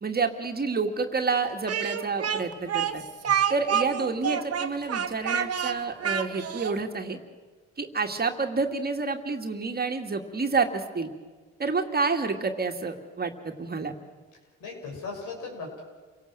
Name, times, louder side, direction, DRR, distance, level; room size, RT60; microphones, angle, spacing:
voice 1, 0.0-3.0 3.5-7.2 7.8-11.1 11.6-13.9, right 4 dB, 30° right, 4 dB, 2.2 m, -29 dB
Speech, 1.7-6.8, right 8 dB, 55° right, 1.7 m, -28 dB
voice 2, 14.6-15.8, left 4 dB, 85° left, 0 dB, 6.9 m, -38 dB
28.0 x 17.5 x 7.8 m, 1.4 s
cardioid pair, 90°, 30 cm